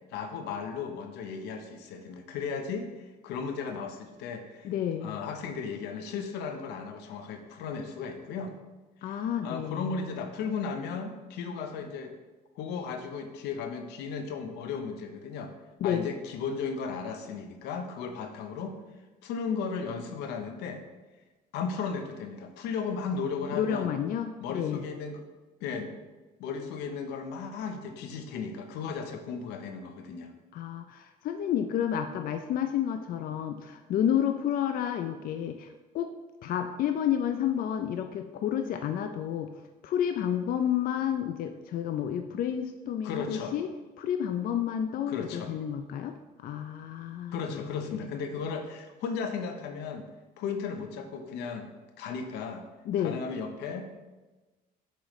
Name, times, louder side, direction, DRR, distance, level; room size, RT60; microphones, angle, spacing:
voice 1, 0.1-4.7 5.0-8.5 9.0-12.1 12.6-15.5 15.8-18.8 19.2-20.8 21.5-23.9 24.4-25.2 25.6-26.0 26.4-30.3 43.0-43.5 45.1-45.5 47.3-50.1 50.4-52.6 53.0-53.8, left 5 dB, 90° left, 6 dB, 0.8 m, -35 dB
voice 2, 4.6-5.2 9.0-10.0 15.8-16.1 23.5-24.8 30.5-35.7 35.9-36.1 36.4-39.5 39.8-43.7 44.0-48.1 52.9-53.2, left 9 dB, 60° left, 7 dB, 0.5 m, -30 dB
7.6 x 5.0 x 3.1 m, 1.2 s
cardioid pair, 110°, 17 cm